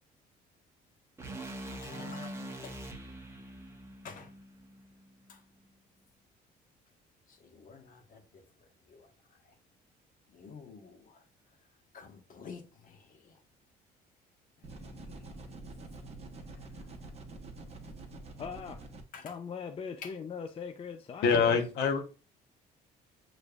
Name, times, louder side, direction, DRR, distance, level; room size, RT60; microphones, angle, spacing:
sound 1, 1.2-5.4, right 1 dB, 15° right, 1.0 m, -44 dB
voice 1, 1.6-3.1 4.0-4.3 5.3-5.4 7.3-8.4 8.9-9.1 10.3-11.2 11.9-13.4 14.6-14.9 19.1-19.3 20.0-20.1, left 5 dB, 55° left, 1.3 m, -50 dB
sound 2, 14.6-19.0, right 2 dB, 40° right, 1.1 m, -46 dB
voice 2, 18.4-18.8 19.2-21.6, left 6 dB, 35° left, 0.5 m, -40 dB
voice 3, 21.2-22.1, left 5 dB, 80° left, 1.0 m, -25 dB
6.9 x 3.2 x 2.4 m
cardioid pair, 110°, 17 cm